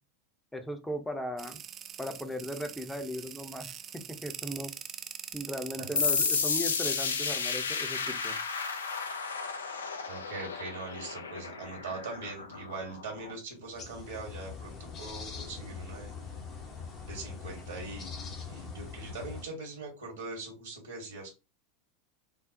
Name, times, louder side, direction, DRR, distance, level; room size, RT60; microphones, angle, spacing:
voice 1, 0.5-1.6 2.0-4.7 5.3-8.4, equal, 5° left, 6 dB, 0.6 m, -37 dB
sound 1, 1.4-6.4, right 8 dB, 30° right, 0.3 m, -43 dB
sound 2, 6.0-13.3, left 5 dB, 75° left, 0.4 m, -32 dB
voice 2, 10.1-16.1 17.0-18.1 18.5-21.4, right 3 dB, 75° right, 0 dB, 1.0 m, -41 dB
sound 3, 13.7-19.5, left 5 dB, 35° left, 0.9 m, -42 dB
3.9 x 2.0 x 2.6 m, 0.28 s
figure-of-eight pair, 85°, 0 cm